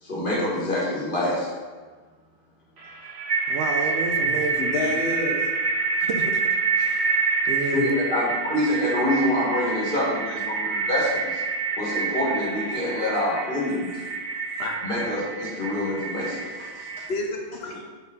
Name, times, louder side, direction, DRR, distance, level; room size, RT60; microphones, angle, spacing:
voice 1, 0.0-1.5 7.7-11.4 11.8-13.9 14.8-17.0 17.6-17.8, left 1 dB, 55° left, -6 dB, 1.9 m, -26 dB
sound 1, 2.8-17.1, right 4 dB, 40° right, 0.6 m, -27 dB
voice 2, 3.5-4.7 6.0-6.4 6.7-7.8, right 4 dB, 80° right, 4 dB, 0.9 m, -31 dB
voice 3, 4.2-5.5 12.7-12.8 14.6-14.8 17.1-17.8, left 2 dB, 75° left, 1 dB, 1.0 m, -30 dB
5.4 x 4.5 x 4.0 m, 1.4 s
omnidirectional pair, 1.1 m